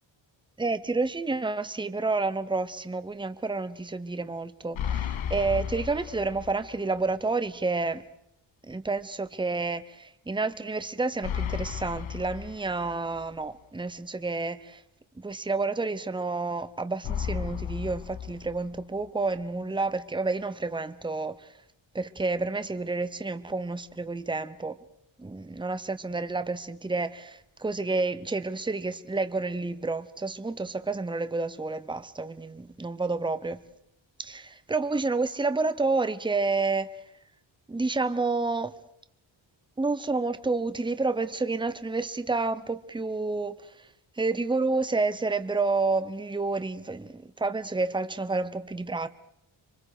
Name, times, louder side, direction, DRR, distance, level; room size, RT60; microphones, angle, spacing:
voice 1, 0.6-8.0 8.6-14.8 15.2-21.4 21.9-24.7 25.2-33.6 34.2-36.9 37.7-38.7 39.8-43.6 44.2-49.1, right 3 dB, 10° right, 0.9 m, -29 dB
sound 1, 4.7-6.8 7.1-7.2 11.2-13.2 17.0-19.0, left 8 dB, 70° left, 1.0 m, -34 dB
27.0 x 24.0 x 5.0 m
wide cardioid pair, 110°, 49 cm